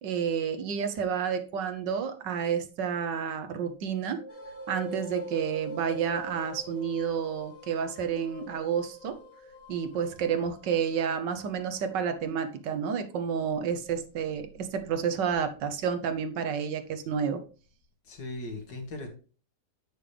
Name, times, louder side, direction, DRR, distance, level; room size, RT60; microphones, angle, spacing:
voice 1, 0.0-4.2 4.7-9.2 9.7-17.4, right 7 dB, 80° right, 8 dB, 1.6 m, -30 dB
Wind, 4.1-7.7 8.2-9.5 10.0-10.1, right 1 dB, 30° left, 2.3 m, -43 dB
sound 1, 4.3-15.5, left 2 dB, 50° left, 2.9 m, -53 dB
voice 2, 18.1-19.1, left 2 dB, 75° left, 3 dB, 2.4 m, -38 dB
8.6 x 6.2 x 3.4 m, 0.37 s
omnidirectional pair, 1.9 m